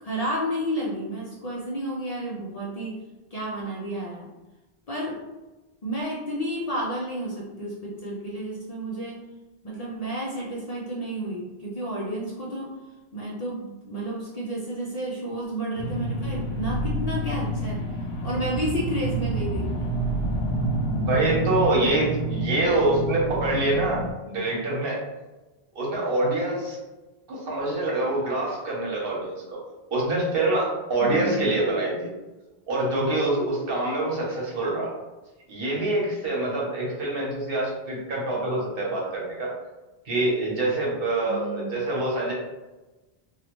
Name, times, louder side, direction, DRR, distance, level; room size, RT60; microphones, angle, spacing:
voice 1, 0.0-3.0 3.3-4.3 4.9-5.2 5.8-9.2 9.6-12.8 13.1-17.8 18.2-20.0 31.0-31.5 41.3-41.7, right 1 dB, 50° left, -5 dB, 0.5 m, -31 dB
sound 1, 15.8-24.1, right 2 dB, 80° left, 0.8 m, -28 dB
voice 2, 21.0-25.0 25.7-26.8 27.3-29.6 29.9-32.1 32.7-34.9 35.5-39.5 40.0-42.3, right 2 dB, 65° right, -3 dB, 1.1 m, -25 dB
3.0 x 2.3 x 2.9 m, 1.1 s
omnidirectional pair, 1.0 m